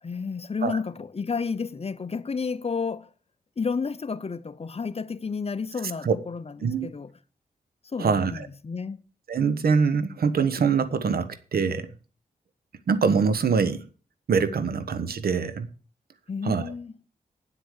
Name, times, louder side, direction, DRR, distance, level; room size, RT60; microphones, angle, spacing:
voice 1, 0.0-3.1 3.6-7.1 7.9-9.0 16.3-16.9, left 5 dB, 40° left, 0.8 m, -31 dB
voice 2, 8.0-8.5 9.3-11.9 12.9-13.8 14.3-15.7 16.4-16.7, right 5 dB, 75° right, 1.1 m, -24 dB
9.3 x 8.3 x 6.6 m
cardioid pair, 65°, 16 cm